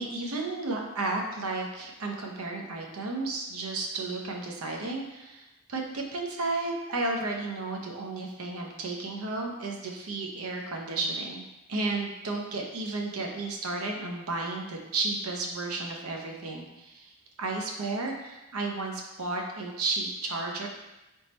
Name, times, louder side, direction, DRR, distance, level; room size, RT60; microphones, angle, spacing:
voice 1, 0.0-11.4 11.7-20.7, right 3 dB, 80° right, 1 dB, 0.7 m, -33 dB
3.6 x 3.0 x 4.2 m, 0.99 s
head